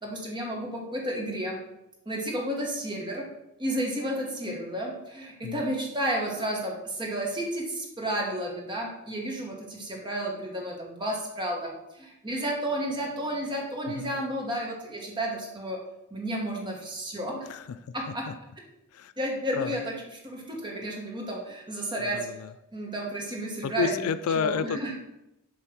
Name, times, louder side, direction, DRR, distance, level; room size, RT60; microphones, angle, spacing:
voice 1, 0.0-1.6 2.0-3.3 3.6-15.8 16.1-17.4 17.9-18.3 19.2-19.9 20.2-22.4 22.7-24.1 24.3-25.0, right 1 dB, 20° right, -1 dB, 1.4 m, -32 dB
voice 2, 13.9-14.2 17.5-17.9 18.3-18.4 18.9-19.1 19.5-19.8 22.1-22.5 23.6-25.0, left 6 dB, 75° left, 13 dB, 0.4 m, -30 dB
7.6 x 3.4 x 6.0 m, 0.88 s
head